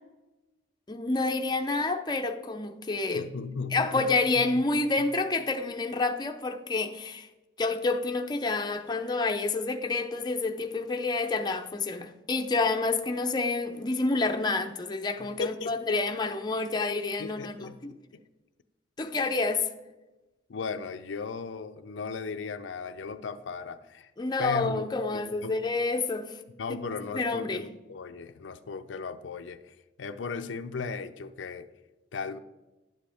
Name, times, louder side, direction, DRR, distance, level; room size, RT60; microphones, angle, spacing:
voice 1, 0.9-3.3 3.7-7.3 7.6-17.9 19.0-19.7 24.2-26.3 27.1-27.6, left 3 dB, 25° left, 5 dB, 0.6 m, -28 dB
voice 2, 3.1-4.7 5.0-5.1 15.2-16.0 17.2-18.2 19.1-19.3 20.5-24.1 24.4-25.6 26.6-31.7 32.1-32.4, left 5 dB, 85° left, 9 dB, 0.5 m, -37 dB
10.5 x 7.6 x 3.5 m, 1.1 s
head